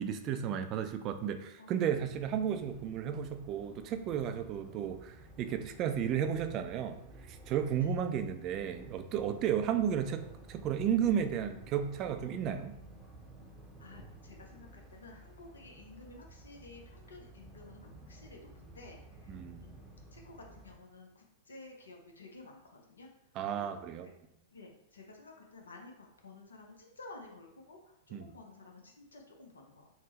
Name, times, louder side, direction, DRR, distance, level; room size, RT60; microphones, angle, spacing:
voice 1, 0.0-7.0 7.3-10.2 10.5-12.8 19.3-19.7 23.4-24.1 28.1-28.3, right 8 dB, 40° right, 8 dB, 0.3 m, -33 dB
sound 1, 1.9-20.8, right 1 dB, 5° right, 0.6 m, -53 dB
voice 2, 13.8-23.1 23.5-23.8 24.5-29.9, left 3 dB, 75° left, 2 dB, 0.6 m, -53 dB
3.5 x 2.0 x 2.9 m, 0.79 s
figure-of-eight pair, 100°, 0 cm